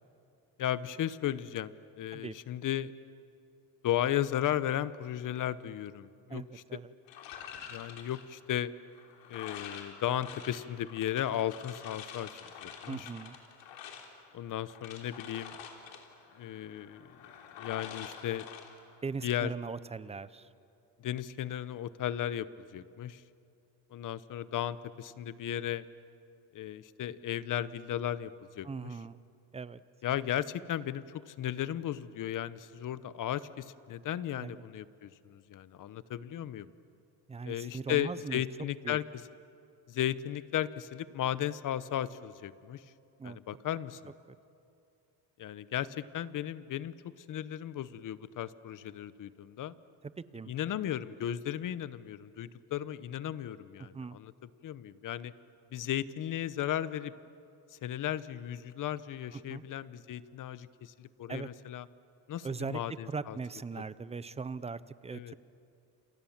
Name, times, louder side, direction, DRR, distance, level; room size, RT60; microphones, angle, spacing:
voice 1, 0.6-2.9 3.8-6.6 7.7-8.7 9.3-13.1 14.3-15.6 16.4-17.1 17.6-18.5 19.2-19.5 21.0-23.2 23.9-25.9 26.5-28.3 28.6-28.9 30.0-36.7 37.4-39.0 39.9-42.8 43.2-44.1 45.4-46.9 47.3-49.7 50.5-54.3 54.6-55.3 55.7-57.1 57.7-61.9 62.3-63.4 63.7-63.8 65.1-65.3, left 11 dB, 45° left, 16 dB, 0.9 m, -35 dB
voice 2, 6.3-6.9 12.9-13.4 19.0-20.5 28.6-29.2 29.5-29.8 34.4-34.6 37.3-38.4 38.8-39.0 43.2-43.4 50.0-50.5 53.8-54.2 59.3-59.6 61.3-61.5 62.4-65.3, right 4 dB, 15° right, 16 dB, 0.6 m, -40 dB
sound 1, 7.1-19.4, left 7 dB, 75° left, 3.6 m, -48 dB
29.0 x 28.0 x 7.3 m, 2.6 s
cardioid pair, 140°, 45 cm